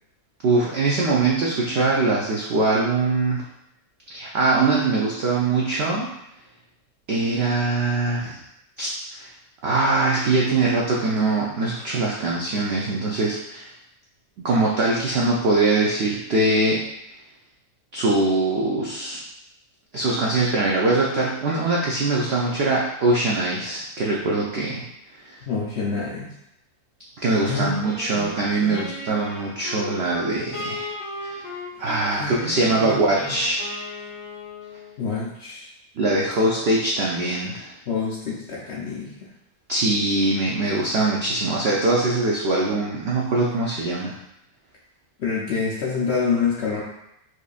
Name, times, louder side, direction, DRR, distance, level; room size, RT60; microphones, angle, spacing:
voice 1, 0.4-3.5 4.1-6.1 7.1-8.4 8.8-9.3 9.6-13.7 14.4-16.9 17.9-19.2 19.9-24.9 25.3-25.4 27.2-30.9 31.2-31.4 31.8-33.7 36.0-37.7 39.7-44.2, right 2 dB, 75° right, -3 dB, 0.5 m, -22 dB
voice 2, 25.5-26.4 27.4-27.9 28.1-28.8 32.1-33.3 35.0-35.7 37.9-39.3 45.2-46.8, left 5 dB, 60° left, -5 dB, 0.7 m, -27 dB
Wind instrument woodwind instrument, 27.3-35.0, left 2 dB, 80° left, 1.4 m, -37 dB
4.6 x 2.6 x 2.4 m, 0.81 s
omnidirectional pair, 1.6 m